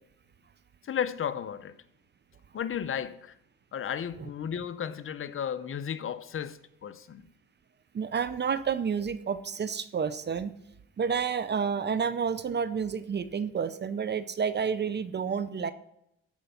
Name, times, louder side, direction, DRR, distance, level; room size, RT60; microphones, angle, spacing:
voice 1, 0.8-1.8 2.5-3.3 3.7-7.3, left 8 dB, 45° left, 0.7 m, -34 dB
voice 2, 7.9-10.5 11.0-15.7, right 6 dB, 35° right, 0.6 m, -30 dB
13.5 x 5.3 x 5.7 m
cardioid pair, 90°, 30 cm